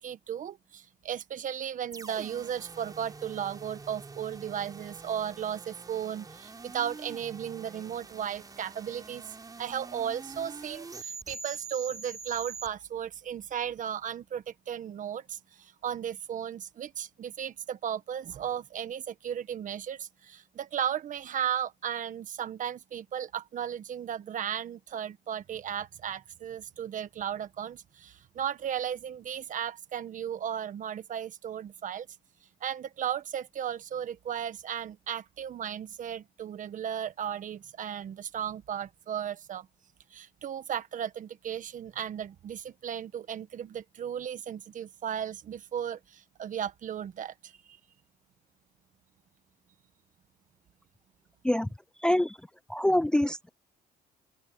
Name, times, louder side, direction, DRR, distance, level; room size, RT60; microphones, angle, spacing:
voice 1, 0.0-32.1 32.6-39.7 40.1-47.5, right 9 dB, 50° right, 1.5 m, -35 dB
sound 1, 1.9-12.7, right 4 dB, 20° right, 4.9 m, -45 dB
voice 2, 52.0-52.4 52.7-53.5, left 1 dB, 5° left, 0.5 m, -25 dB
open air
cardioid pair, 110°, 17 cm